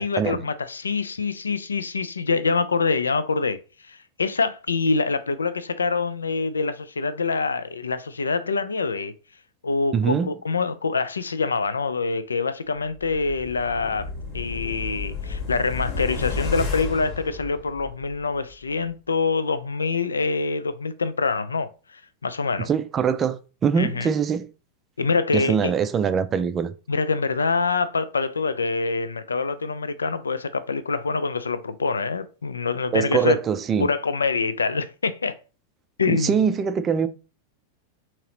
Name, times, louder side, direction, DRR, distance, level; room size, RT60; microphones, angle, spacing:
voice 1, 0.0-3.6 3.9-9.1 9.6-14.1 14.3-21.7 22.2-22.7 23.8-24.1 25.0-25.7 26.9-33.4 33.8-35.4 36.0-36.4, left 4 dB, 75° left, 0.3 m, -25 dB
voice 2, 9.9-10.3 22.7-24.5 25.3-26.7 32.9-33.9 36.1-37.1, right 7 dB, 25° right, 0.4 m, -23 dB
sound 1, 12.9-18.1 18.5-18.6, left 4 dB, 40° left, 1.0 m, -32 dB
3.7 x 2.9 x 2.9 m
figure-of-eight pair, 90°, 0 cm